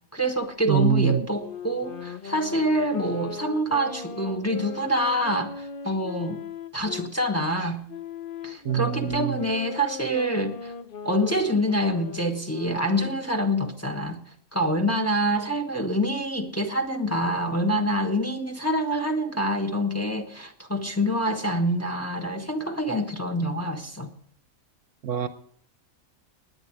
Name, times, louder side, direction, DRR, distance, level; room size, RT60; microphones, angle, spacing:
voice 1, 0.1-6.4 6.7-7.8 8.4-10.7 11.0-14.2 14.5-24.1, equal, 10° left, 1.2 m, -26 dB
voice 2, 0.7-1.3 8.6-9.5 25.0-25.3, right 8 dB, 65° right, 1.0 m, -24 dB
Wind instrument woodwind instrument, 1.3-7.1 7.9-13.3, left 6 dB, 45° left, 0.8 m, -39 dB
17.5 x 9.8 x 4.7 m
omnidirectional pair, 1.5 m